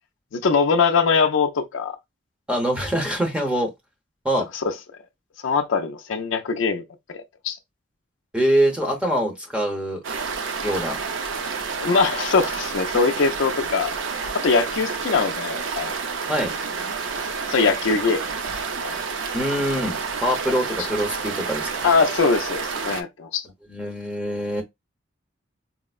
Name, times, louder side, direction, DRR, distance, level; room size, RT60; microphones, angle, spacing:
voice 1, 0.3-2.0 4.6-4.7 5.4-6.8 7.1-7.6 11.8-13.9 14.3-16.0 17.5-18.2 18.8-19.0 21.8-23.4, left 5 dB, 75° left, 0.5 m, -22 dB
voice 2, 2.5-3.7 4.2-4.5 8.3-10.0 10.6-11.0 16.3-16.5 19.3-21.8 23.7-24.6, equal, 5° right, 0.7 m, -24 dB
sound 1, 10.0-23.0, right 5 dB, 75° right, 0.5 m, -29 dB
4.3 x 2.0 x 2.3 m
head